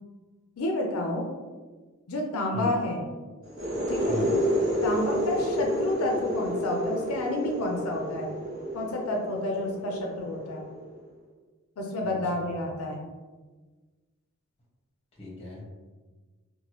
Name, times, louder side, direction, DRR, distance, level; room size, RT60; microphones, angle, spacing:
voice 1, 0.6-1.3 2.1-3.0 3.9-4.2 4.8-8.3 8.7-10.6 11.8-13.1, left 1 dB, 80° left, 1 dB, 0.4 m, -30 dB
sound 1, 3.4-11.0, equal, 40° right, 1.1 m, -30 dB
voice 2, 4.1-4.4 12.0-12.5 15.2-15.6, left 1 dB, 30° left, -4 dB, 0.8 m, -36 dB
2.9 x 2.2 x 3.0 m, 1.3 s
head